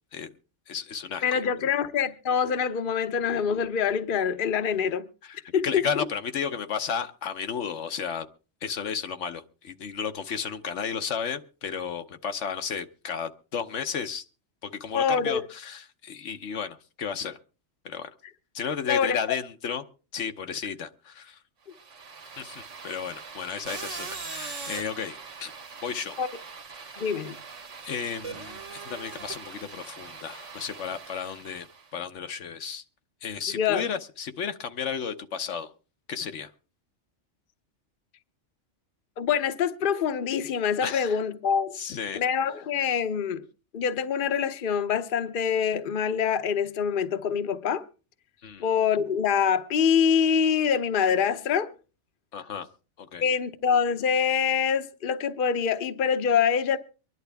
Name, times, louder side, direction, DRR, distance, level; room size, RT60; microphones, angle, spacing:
voice 1, 0.7-1.4 5.2-8.3 8.6-14.2 14.6-17.4 17.8-18.1 18.5-19.8 20.1-21.4 22.4-25.5 25.8-26.2 27.8-31.7 31.9-32.8 33.2-35.7 36.1-36.5 40.8-41.2 41.7-42.2 48.4-48.6 52.3-52.7 53.0-53.2, left 6 dB, 75° left, 1.2 m, -33 dB
voice 2, 1.2-5.0 5.5-6.0 14.9-15.4 18.9-19.4 26.2-26.3 27.0-27.4 33.5-33.8 39.2-41.7 42.1-43.4 43.7-47.8 48.6-51.7 53.2-56.8, left 7 dB, 50° left, 0.9 m, -25 dB
sound 1, 21.7-31.9, right 5 dB, 90° right, 1.6 m, -41 dB
24.5 x 11.0 x 3.4 m
omnidirectional pair, 1.2 m